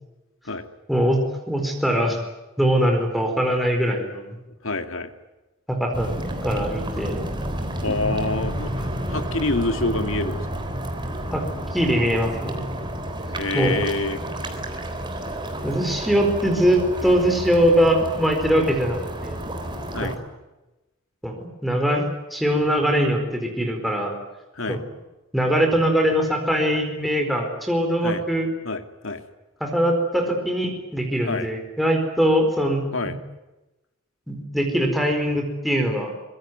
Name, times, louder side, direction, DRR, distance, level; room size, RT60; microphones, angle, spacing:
voice 1, 1.5-2.2 2.6-4.2 5.7-6.2 6.4-7.3 11.3-12.6 13.5-13.7 15.6-19.4 20.0-20.1 21.2-24.2 24.7-24.8 25.3-28.5 29.6-33.1 34.3-36.1, equal, ahead, 2 dB, 4.6 m, -22 dB
voice 2, 4.6-5.1 7.8-10.4 13.4-14.2 19.9-20.2 24.5-24.8 28.0-28.2 28.6-29.2 31.3-31.5 32.9-33.2, left 2 dB, 65° left, 8 dB, 2.4 m, -27 dB
sound 1, 5.9-20.2, right 1 dB, 20° right, 3.8 m, -30 dB
24.5 x 21.5 x 9.6 m, 1.0 s
head